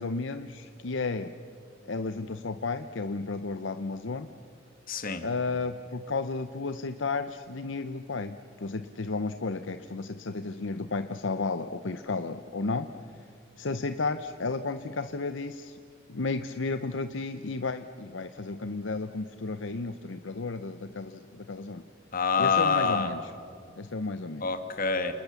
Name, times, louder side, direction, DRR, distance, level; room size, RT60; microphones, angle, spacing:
voice 1, 0.0-1.3 1.9-4.3 5.2-12.9 13.6-15.8 16.1-21.8 22.4-23.3 23.8-24.4, left 3 dB, 70° left, 10 dB, 0.8 m, -33 dB
voice 2, 4.9-5.2 22.1-23.1 24.4-25.1, left 5 dB, 45° left, 8 dB, 2.0 m, -26 dB
30.0 x 20.0 x 7.0 m, 2.5 s
head